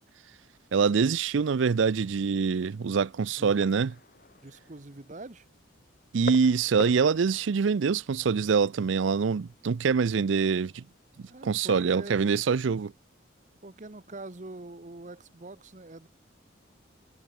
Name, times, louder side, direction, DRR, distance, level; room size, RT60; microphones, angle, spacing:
voice 1, 0.7-3.9 6.1-10.9 11.4-12.9, right 5 dB, 70° right, 0.5 m, -25 dB
sound 1, 1.3-12.7, left 2 dB, 45° left, 1.8 m, -47 dB
voice 2, 4.3-5.5 11.3-12.3 13.6-16.1, right 2 dB, 40° right, 1.0 m, -44 dB
head